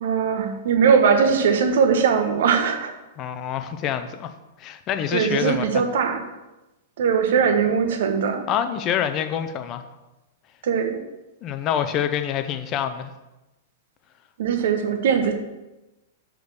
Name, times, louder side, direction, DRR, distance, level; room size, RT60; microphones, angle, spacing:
voice 1, 0.0-2.9 5.1-6.2 7.0-8.5 10.6-11.0 14.4-15.3, right 6 dB, 60° right, 5 dB, 1.1 m, -20 dB
voice 2, 3.2-4.3 4.6-5.6 8.5-9.8 11.4-13.1, left 9 dB, 35° left, 9 dB, 0.7 m, -26 dB
6.4 x 5.3 x 6.3 m, 1.0 s
figure-of-eight pair, 100°, 0 cm